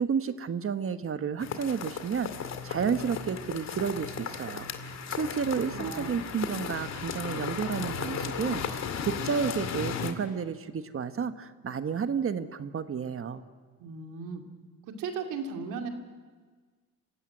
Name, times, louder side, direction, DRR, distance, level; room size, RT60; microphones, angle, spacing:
voice 1, 0.0-13.4, right 6 dB, 45° right, 10 dB, 1.3 m, -31 dB
sound 1, 1.4-10.1, left 6 dB, 60° left, 2.3 m, -35 dB
voice 2, 5.7-6.2 13.8-14.4 15.0-15.9, right 5 dB, 90° right, 4 dB, 2.7 m, -36 dB
27.0 x 16.0 x 9.8 m, 1.5 s
cardioid pair, 90°, 30 cm